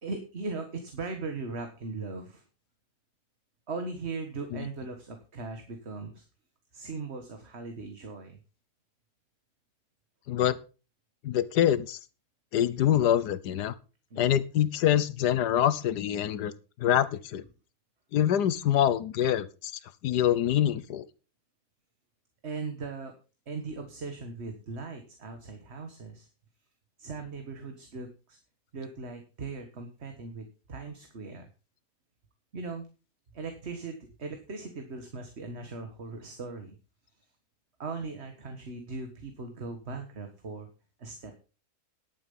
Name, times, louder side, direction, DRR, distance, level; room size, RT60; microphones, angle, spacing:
voice 1, 0.0-2.4 3.7-6.2 6.7-8.4 14.1-14.3 22.4-23.1 23.5-26.3 27.0-28.4 28.7-31.5 32.5-32.9 33.3-36.8 37.8-40.7 41.0-41.3, right 4 dB, 45° right, 5 dB, 1.8 m, -39 dB
voice 2, 10.3-10.6 11.2-12.0 12.5-13.7 14.2-16.5 16.8-17.4 18.1-19.7 20.0-21.0, left 10 dB, 85° left, 16 dB, 1.4 m, -25 dB
11.0 x 8.7 x 5.5 m, 0.34 s
omnidirectional pair, 1.7 m